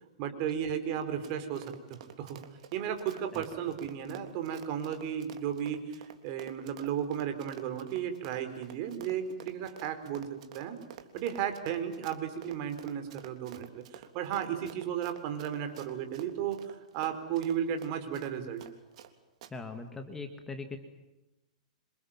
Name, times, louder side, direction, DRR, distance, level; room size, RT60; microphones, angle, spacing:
voice 1, 0.2-2.4 2.7-10.8 11.1-18.7, right 9 dB, 40° right, 8 dB, 4.9 m, -34 dB
Run, 1.0-19.1 19.4-19.5, right 10 dB, 60° right, 3.5 m, -50 dB
voice 2, 19.5-20.8, left 4 dB, 10° left, 6 dB, 2.3 m, -40 dB
28.0 x 27.0 x 7.6 m, 0.96 s
hypercardioid pair, 150°, 4 cm